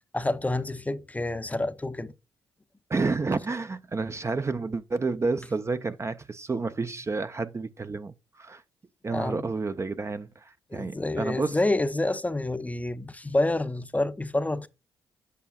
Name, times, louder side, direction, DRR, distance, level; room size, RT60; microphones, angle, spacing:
voice 1, 0.1-2.1 9.1-9.5 10.7-14.7, left 2 dB, 15° left, 0.6 m, -28 dB
voice 2, 2.9-8.6 9.0-11.6, right 3 dB, 30° right, 0.5 m, -30 dB
8.3 x 6.2 x 2.3 m
supercardioid pair, 60°, 10 cm